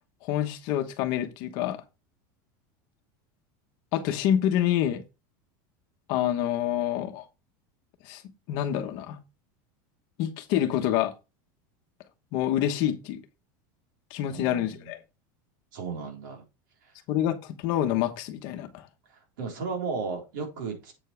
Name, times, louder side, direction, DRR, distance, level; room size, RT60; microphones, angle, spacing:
voice 1, 0.2-1.8 3.9-5.0 6.1-7.2 8.0-8.2 8.5-9.2 10.2-11.1 12.3-13.2 14.1-15.0 17.1-18.9, left 11 dB, 45° left, 1.1 m, -27 dB
voice 2, 14.3-14.9 15.7-16.4 19.1-20.9, right 4 dB, 80° right, 3.9 m, -35 dB
8.1 x 7.3 x 3.3 m
supercardioid pair, 175°, 10 cm